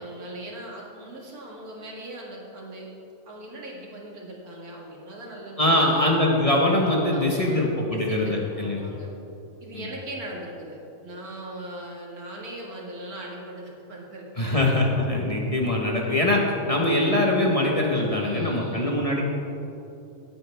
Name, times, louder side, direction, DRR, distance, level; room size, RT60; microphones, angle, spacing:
voice 1, 0.0-2.9 3.3-6.2 7.1-9.1 9.6-14.7 18.2-18.9, right 1 dB, 75° right, -2 dB, 2.4 m, -39 dB
voice 2, 5.6-8.8 9.7-9.8 14.4-19.2, left 1 dB, 25° left, -2 dB, 1.2 m, -23 dB
18.0 x 8.8 x 3.5 m, 2.9 s
omnidirectional pair, 1.6 m